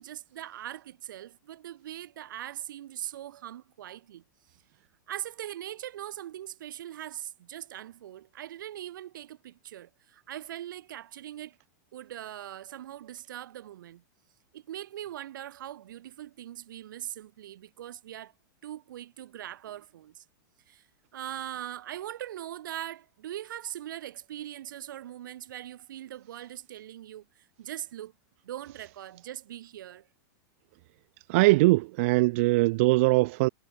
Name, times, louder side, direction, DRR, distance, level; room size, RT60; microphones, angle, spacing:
voice 1, 0.0-4.2 5.1-11.5 11.9-14.0 14.5-18.3 18.6-20.2 20.7-20.8 21.1-27.3 27.6-28.1 28.4-30.0, right 12 dB, 75° right, 2.5 m, -41 dB
voice 2, 31.3-33.5, right 22 dB, 40° right, 0.4 m, -21 dB
supercardioid pair, 165°, 11 cm